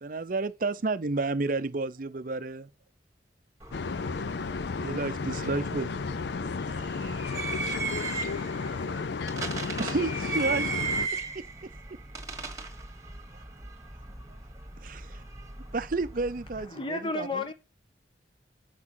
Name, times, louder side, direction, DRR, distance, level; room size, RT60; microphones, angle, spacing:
voice 1, 0.0-2.7 4.8-5.9 6.3-6.9 7.3-7.5 9.8-10.8 14.8-15.2 15.7-17.4, right 3 dB, 45° right, 0.6 m, -31 dB
sound 1, 3.6-16.6, right 4 dB, 20° right, 1.6 m, -37 dB
sound 2, 3.7-11.1, left 4 dB, 65° left, 0.4 m, -33 dB
voice 2, 7.5-9.7, left 4 dB, 90° left, 1.0 m, -41 dB
voice 3, 16.7-17.5, left 2 dB, 25° left, 1.2 m, -31 dB
7.4 x 6.1 x 6.0 m
head